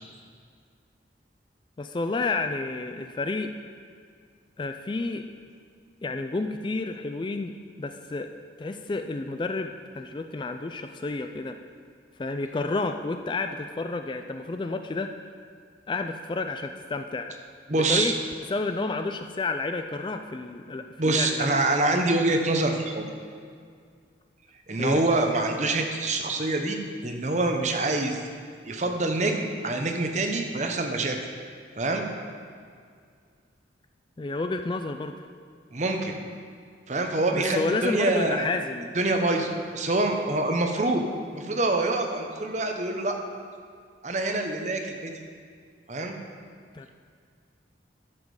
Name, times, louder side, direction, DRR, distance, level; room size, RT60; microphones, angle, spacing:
voice 1, 1.8-3.5 4.6-5.2 6.0-7.5 7.8-8.3 8.6-11.6 12.2-15.1 15.9-17.3 17.7-18.1 18.5-21.6 24.7-25.0 34.2-35.3 37.3-38.9 46.7-46.9, left 3 dB, 25° left, 7 dB, 0.3 m, -30 dB
voice 2, 17.7-18.1 21.0-23.1 24.7-28.2 28.7-31.2 31.8-32.1 35.7-36.2 36.9-38.5 38.9-41.0 41.3-43.2 44.0-45.1 45.9-46.2, right 2 dB, 40° right, 4 dB, 0.9 m, -25 dB
12.0 x 7.3 x 4.8 m, 2.1 s
head